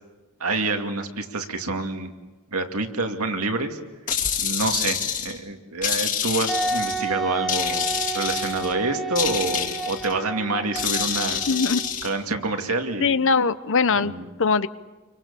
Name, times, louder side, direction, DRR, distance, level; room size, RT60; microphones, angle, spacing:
voice 1, 0.4-2.1 2.5-3.8 4.4-7.9 8.1-11.4 12.0-13.1 13.9-14.2, right 3 dB, 80° right, 4 dB, 2.5 m, -27 dB
sound 1, 4.1-5.4 5.8-7.1 7.5-8.7 9.1-10.1 10.7-12.1, left 8 dB, 35° left, 2.7 m, -27 dB
Wind instrument woodwind instrument, 6.5-12.1, right 3 dB, ahead, 1.1 m, -31 dB
voice 2, 11.5-11.8 13.0-14.1 14.4-14.7, left 4 dB, 60° left, 14 dB, 0.9 m, -21 dB
29.5 x 24.5 x 7.1 m, 1.2 s
head